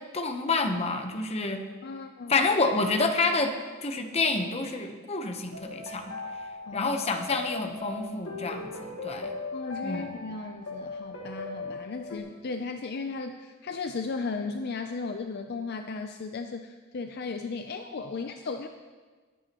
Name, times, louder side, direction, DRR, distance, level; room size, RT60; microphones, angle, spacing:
voice 1, 0.1-1.6 2.3-3.5 3.8-6.2 6.7-9.4 9.8-10.1, left 3 dB, 30° left, 5 dB, 0.9 m, -28 dB
voice 2, 1.8-2.3 6.7-6.9 9.5-18.7, left 4 dB, 50° left, 6 dB, 0.5 m, -35 dB
sound 1, 5.5-12.2, left 3 dB, 90° left, 1.7 m, -38 dB
20.5 x 8.9 x 3.0 m, 1.4 s
head